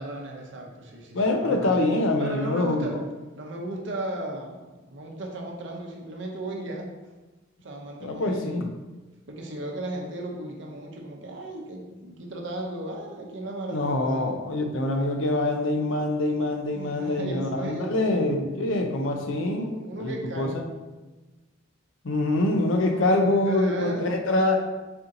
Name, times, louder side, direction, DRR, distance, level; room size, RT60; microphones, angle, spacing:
voice 1, 0.0-1.7 2.2-3.0 3.4-6.9 7.6-8.6 9.3-14.3 16.5-18.4 19.5-20.7 22.9-24.1, right 1 dB, 60° right, 0 dB, 0.7 m, -36 dB
voice 2, 1.1-3.0 8.0-8.7 13.7-19.7 20.0-20.7 22.0-24.6, left 2 dB, 70° left, 4 dB, 0.5 m, -25 dB
4.2 x 2.7 x 3.7 m, 1.2 s
head